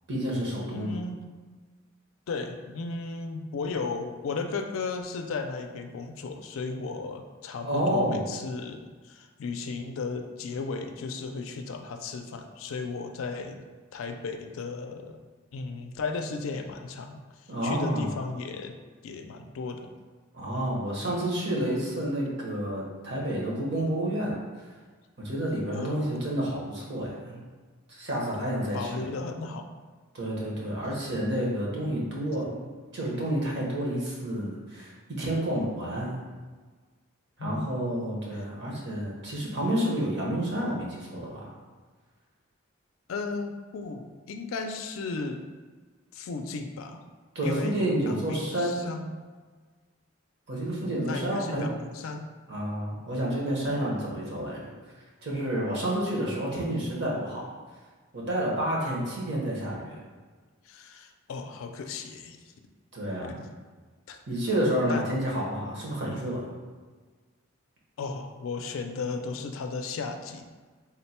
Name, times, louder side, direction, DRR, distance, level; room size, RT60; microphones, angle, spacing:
voice 1, 0.1-0.9 7.6-8.3 17.5-18.1 20.3-24.4 25.2-27.4 27.9-29.1 30.1-32.6 32.9-36.2 37.4-41.5 47.3-48.8 50.5-51.7 52.5-54.7 55.2-57.4 58.1-59.9 62.9-63.4 64.3-66.5, right 1 dB, 55° right, -4 dB, 1.0 m, -29 dB
voice 2, 0.7-1.2 2.3-13.7 13.9-15.2 15.5-18.7 19.0-19.9 20.5-20.7 25.7-26.2 28.3-28.4 28.7-29.6 37.4-37.8 43.1-45.4 46.1-47.0 47.4-49.1 50.7-52.3 56.5-56.8 60.7-62.5 63.3-63.5 64.1-64.2 64.9-65.1 66.0-66.2 68.0-70.5, left 4 dB, 75° left, 5 dB, 0.4 m, -35 dB
3.7 x 2.2 x 4.2 m, 1.4 s
head